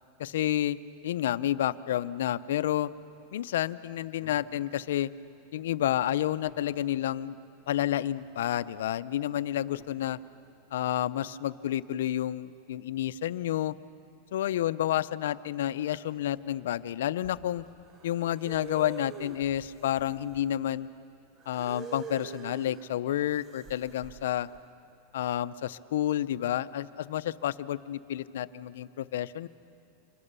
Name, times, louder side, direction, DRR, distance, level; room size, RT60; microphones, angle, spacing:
voice 1, 0.2-0.8 1.0-2.9 3.3-5.1 5.5-7.4 7.7-10.2 10.7-13.7 14.3-17.7 18.0-20.9 21.5-24.5 25.1-29.5, left 12 dB, 80° left, 15 dB, 0.6 m, -30 dB
sound 1, 2.8-3.1 3.8-4.7 5.0-6.8 7.2-7.4 7.8-8.5 9.3-10.3 12.7-13.5 15.3-15.5 16.1-20.7, left 2 dB, 10° right, 4.9 m, -60 dB
sound 2, 17.9-20.6 21.4-22.9 23.3-24.6, right 6 dB, 25° right, 0.9 m, -45 dB
26.0 x 22.5 x 6.8 m, 2.7 s
supercardioid pair, 145°, 0 cm